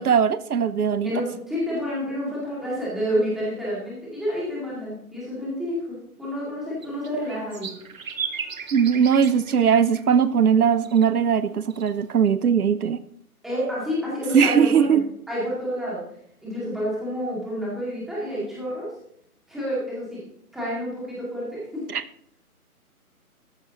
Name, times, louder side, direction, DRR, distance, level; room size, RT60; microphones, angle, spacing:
voice 1, 0.0-1.1 8.7-13.0 14.3-15.0 21.9-22.0, right 7 dB, 75° right, 15 dB, 0.8 m, -19 dB
voice 2, 1.0-7.7 13.4-15.0 15.3-16.0 16.4-18.9 19.5-20.2 20.5-21.8, equal, ahead, -8 dB, 2.2 m, -29 dB
sound 1, 6.8-12.3, right 6 dB, 60° right, 1.5 m, -37 dB
14.0 x 11.0 x 3.0 m, 0.69 s
hypercardioid pair, 165°, 45 cm